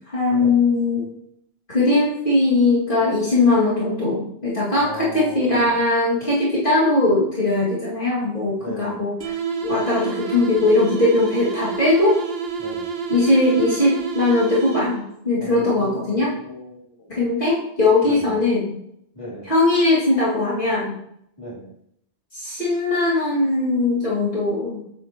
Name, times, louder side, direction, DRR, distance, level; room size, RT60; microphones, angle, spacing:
voice 1, 0.1-1.1 1.7-9.1 9.6-12.2 13.1-16.3 17.1-18.7 19.4-21.0 22.3-24.8, left 2 dB, 55° left, -9 dB, 2.6 m, -20 dB
voice 2, 4.7-5.8 8.6-9.1 12.6-12.9 15.4-17.2 18.0-18.4 19.1-19.5 21.4-21.7, left 1 dB, 30° left, -7 dB, 3.3 m, -36 dB
sound 1, 9.2-15.2, right 5 dB, 70° right, 1.1 m, -29 dB
8.6 x 8.2 x 3.0 m, 0.73 s
omnidirectional pair, 1.0 m